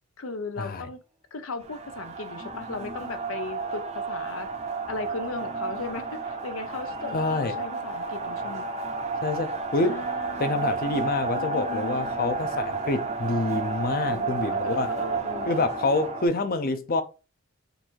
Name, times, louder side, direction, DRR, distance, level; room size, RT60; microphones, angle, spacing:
voice 1, 0.2-1.0 1.3-4.5 4.9-8.6 9.8-10.7 11.3-12.1 14.1-15.5, left 3 dB, 85° left, 0.7 m, -37 dB
sound 1, 1.6-16.3, right 4 dB, 35° right, 0.6 m, -31 dB
voice 2, 7.1-7.5 9.2-10.1 10.4-14.9 15.4-17.0, left 2 dB, 45° left, 0.6 m, -27 dB
3.9 x 2.6 x 4.5 m
head